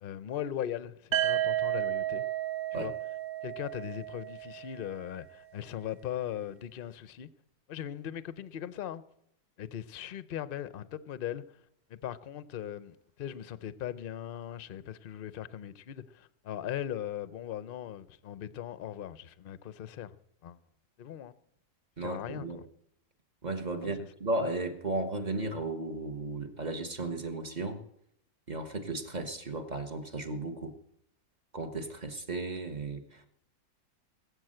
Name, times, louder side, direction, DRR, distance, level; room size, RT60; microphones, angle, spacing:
voice 1, 0.0-2.3 2.7-2.9 3.4-7.3 7.7-9.0 9.6-11.6 11.9-20.2 20.4-20.6 21.0-21.3 22.0-22.6 23.8-23.9, left 10 dB, 55° left, 0.6 m, -39 dB
sound 1, 1.1-5.0, right 13 dB, 55° right, 0.6 m, -32 dB
voice 2, 22.0-22.6 23.4-27.8 28.5-30.7 31.5-33.3, right 2 dB, 30° right, 1.2 m, -35 dB
19.5 x 8.0 x 7.7 m
omnidirectional pair, 1.7 m